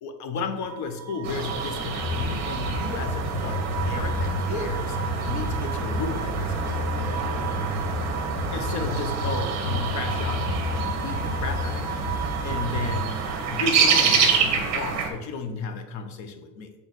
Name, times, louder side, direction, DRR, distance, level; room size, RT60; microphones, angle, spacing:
voice 1, 0.0-5.0 5.2-6.8 8.5-13.2 13.5-16.7, left 4 dB, 45° left, 8 dB, 0.7 m, -33 dB
sound 1, 0.6-14.4, right 8 dB, 10° left, 1.6 m, -37 dB
sound 2, 1.2-15.1, right 5 dB, 40° right, 1.0 m, -28 dB
sound 3, 2.0-13.1, left 2 dB, 80° left, 1.7 m, -31 dB
6.4 x 3.7 x 4.0 m, 1.2 s
cardioid pair, 155°, 40 cm